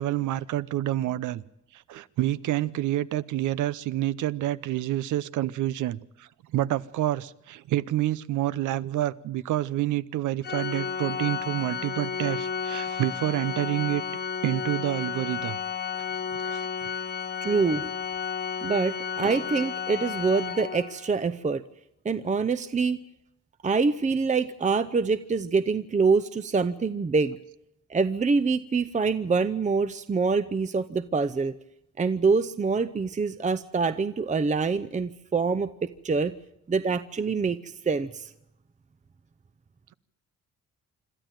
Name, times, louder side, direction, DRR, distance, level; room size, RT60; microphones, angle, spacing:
voice 1, 0.0-1.4 1.7-14.0 14.4-15.6 16.3-16.7, right 14 dB, 80° right, 0.8 m, -28 dB
Organ, 10.4-21.1, left 7 dB, 35° left, 0.8 m, -32 dB
voice 2, 17.4-17.8 18.6-21.6 22.0-23.0 23.6-27.4 27.9-31.6 32.0-36.3 36.7-38.3, right 4 dB, 25° right, 0.7 m, -25 dB
26.0 x 13.0 x 9.1 m
cardioid pair, 90°, 30 cm